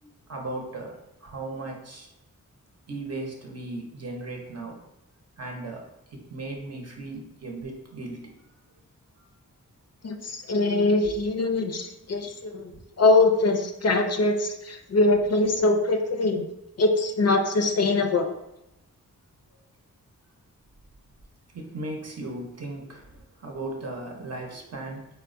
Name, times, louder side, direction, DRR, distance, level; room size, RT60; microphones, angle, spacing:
voice 1, 0.0-2.1 2.9-4.8 5.4-8.4 11.0-11.2 11.6-11.7 12.2-12.7 21.5-25.1, right 2 dB, 50° right, 0 dB, 0.7 m, -37 dB
voice 2, 10.0-12.7 13.0-16.4 16.8-18.3, left 2 dB, 50° left, 4 dB, 0.4 m, -23 dB
4.3 x 2.1 x 2.5 m, 0.87 s
wide cardioid pair, 75°, 33 cm